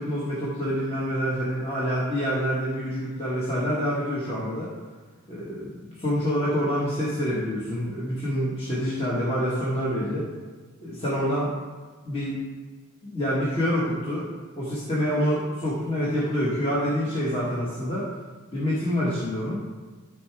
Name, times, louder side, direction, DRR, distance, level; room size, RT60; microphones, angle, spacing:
voice 1, 0.0-4.7 5.3-10.3 10.8-11.5 12.0-12.4 13.0-14.3 14.6-18.1 18.5-19.6, equal, 25° left, -8 dB, 1.5 m, -27 dB
12.5 x 4.7 x 3.4 m, 1.4 s
head